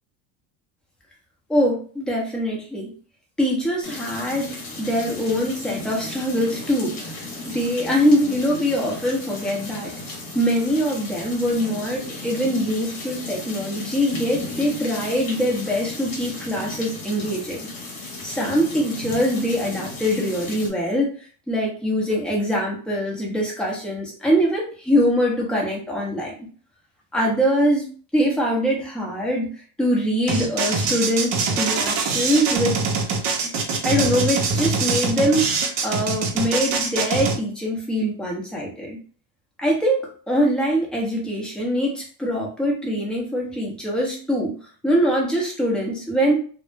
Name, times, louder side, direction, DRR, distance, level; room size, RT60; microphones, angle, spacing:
voice 1, 1.5-2.9 3.4-4.5 4.8-9.9 10.3-17.7 18.2-21.1 21.5-26.5 27.1-27.9 28.1-29.5 29.8-32.8 33.4-33.5 33.8-39.0 39.6-44.6 44.8-46.4, equal, ahead, -3 dB, 0.6 m, -23 dB
sound 1, 3.8-20.7, left 2 dB, 45° left, 0.9 m, -35 dB
sound 2, 30.3-37.4, right 4 dB, 50° right, 0.6 m, -23 dB
2.2 x 2.0 x 3.2 m, 0.42 s
cardioid pair, 140°, 48 cm